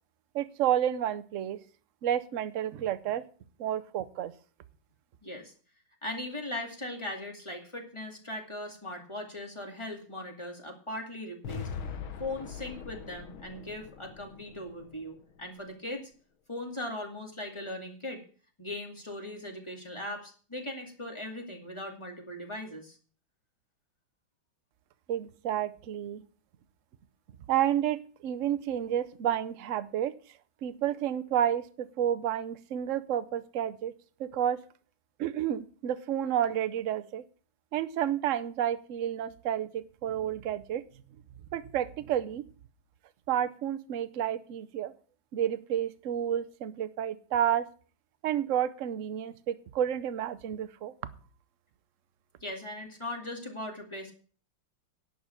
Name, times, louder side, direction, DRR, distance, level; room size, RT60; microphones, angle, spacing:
voice 1, 0.3-1.6 2.0-3.2 3.6-4.3 25.1-26.2 27.5-30.1 30.6-33.9 34.2-34.6 35.2-37.2 37.7-40.8 41.5-42.4 43.3-44.9 45.3-47.7 48.2-50.9, right 10 dB, 60° right, 14 dB, 0.8 m, -30 dB
voice 2, 5.2-5.5 6.0-11.7 12.2-16.1 16.5-18.2 18.6-23.0 52.4-54.1, left 1 dB, 15° left, 2 dB, 2.3 m, -39 dB
sound 1, 11.4-15.6, left 6 dB, 90° left, 2.0 m, -42 dB
11.0 x 5.6 x 8.7 m, 0.40 s
omnidirectional pair, 2.2 m